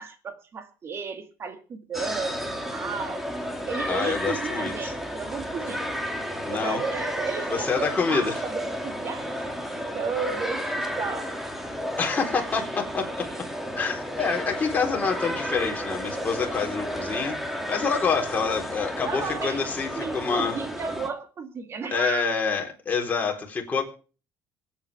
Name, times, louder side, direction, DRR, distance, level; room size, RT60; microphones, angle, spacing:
voice 1, 0.0-3.3 3.7-5.8 6.5-9.4 9.9-11.3 19.0-19.7 20.0-22.3, right 5 dB, 40° right, 8 dB, 2.1 m, -33 dB
sound 1, 1.9-21.1, equal, 5° right, 2.4 m, -32 dB
voice 2, 3.9-4.9 6.4-6.8 7.5-8.4 12.0-13.1 13.8-20.6 21.9-23.8, left 5 dB, 25° left, 1 dB, 4.0 m, -27 dB
24.5 x 8.8 x 3.5 m, 0.36 s
cardioid pair, 110°, 7 cm